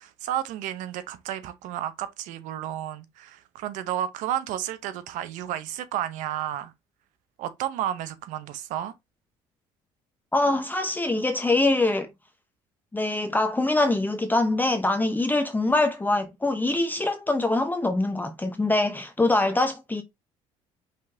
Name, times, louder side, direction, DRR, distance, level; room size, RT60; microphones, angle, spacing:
voice 1, 0.0-6.7 7.4-8.9, right 11 dB, 75° right, 0.8 m, -32 dB
voice 2, 10.3-12.1 12.9-20.0, left 2 dB, 15° left, 0.7 m, -24 dB
5.3 x 3.7 x 2.7 m
supercardioid pair, 75°, 13 cm